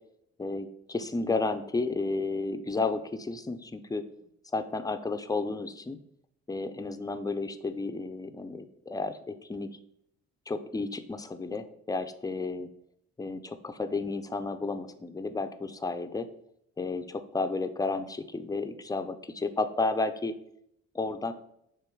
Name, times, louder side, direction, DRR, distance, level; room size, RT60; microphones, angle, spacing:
voice 1, 0.4-4.0 4.5-6.0 6.5-9.7 10.5-12.7 13.2-16.3 16.8-20.3 20.9-21.3, left 3 dB, 10° left, 9 dB, 0.5 m, -32 dB
6.8 x 3.1 x 4.6 m, 0.74 s
cardioid pair, 90°, 30 cm